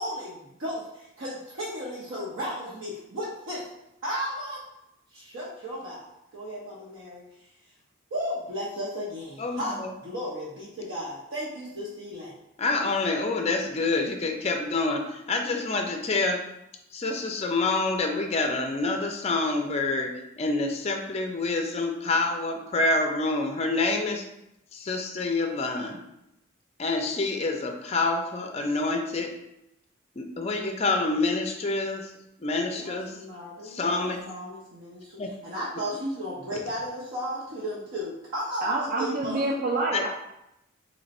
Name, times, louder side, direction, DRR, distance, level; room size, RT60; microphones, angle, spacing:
voice 1, 0.0-3.7 4.0-4.6 5.1-7.2 8.1-12.3 32.6-39.5, equal, 65° right, -6 dB, 0.7 m, -35 dB
voice 2, 12.6-16.4 16.9-20.1 20.4-24.2 24.7-26.0 26.8-29.3 30.2-32.1 32.4-33.1 33.6-34.2 35.2-35.3 39.9-40.0, left 3 dB, 30° left, 4 dB, 0.4 m, -27 dB
voice 3, 38.6-40.1, right 2 dB, 45° right, -1 dB, 0.3 m, -27 dB
3.1 x 2.5 x 4.1 m, 0.85 s
head